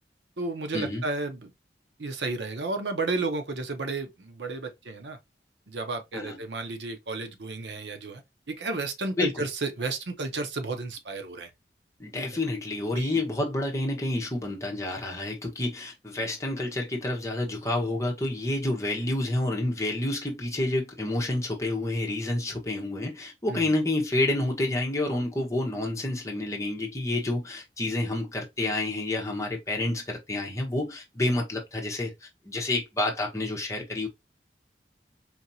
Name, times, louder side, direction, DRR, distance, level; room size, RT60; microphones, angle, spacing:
voice 1, 0.4-1.5 2.0-5.2 5.7-8.2 8.5-11.5 12.2-12.3 12.9-13.2 23.5-23.6, right 3 dB, 85° right, 0.8 m, -32 dB
voice 2, 12.0-34.1, left 2 dB, 15° left, 1.0 m, -29 dB
4.5 x 2.8 x 2.7 m
head